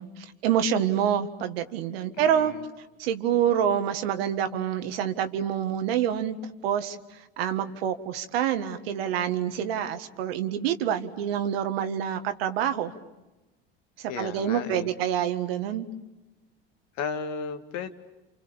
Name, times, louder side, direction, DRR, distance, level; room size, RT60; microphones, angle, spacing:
voice 1, 0.0-2.5 3.0-6.4 6.6-12.9 14.0-15.9, right 9 dB, 85° right, 8 dB, 1.8 m, -27 dB
voice 2, 2.2-2.7 14.1-14.9 17.0-17.9, left 6 dB, 65° left, 8 dB, 2.2 m, -34 dB
29.5 x 28.0 x 7.1 m, 1.0 s
hypercardioid pair, 80°, 29 cm